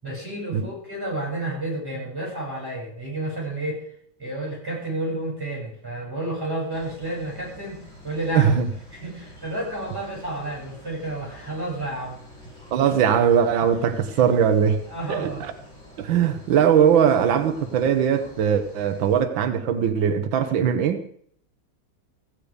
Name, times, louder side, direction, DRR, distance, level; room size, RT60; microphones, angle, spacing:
voice 1, 0.0-3.8 4.2-8.6 9.0-12.2 14.9-15.4 18.9-19.0, right 1 dB, 10° right, -4 dB, 7.9 m, -30 dB
sound 1, 6.7-19.2, left 1 dB, 45° left, 7.8 m, -47 dB
voice 2, 8.3-8.7 12.7-14.8 15.1-15.5 16.0-21.0, right 8 dB, 90° right, 8 dB, 1.7 m, -20 dB
15.0 x 9.5 x 5.1 m, 0.62 s
omnidirectional pair, 2.0 m